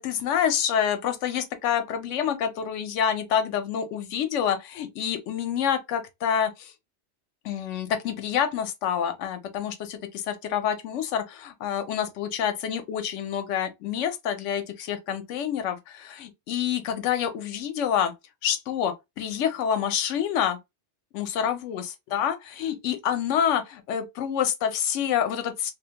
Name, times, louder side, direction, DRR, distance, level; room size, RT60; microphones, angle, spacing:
voice 1, 0.0-6.7 7.4-18.1 18.4-20.6 21.1-25.7, left 9 dB, 80° left, 0.9 m, -27 dB
2.6 x 2.1 x 2.7 m
omnidirectional pair, 1.2 m